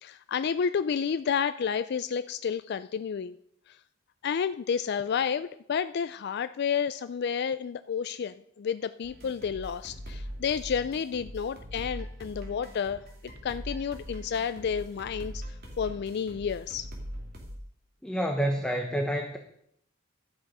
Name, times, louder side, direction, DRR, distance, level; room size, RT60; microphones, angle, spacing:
voice 1, 0.0-3.3 3.7-3.8 4.2-13.0 13.4-15.4 15.8-16.9, left 7 dB, 55° left, 12 dB, 0.4 m, -30 dB
sound 1, 9.0-17.5, equal, 50° right, 2.8 m, -42 dB
voice 2, 18.0-19.4, right 1 dB, 5° left, 3 dB, 0.9 m, -28 dB
12.5 x 8.7 x 5.4 m, 0.72 s
head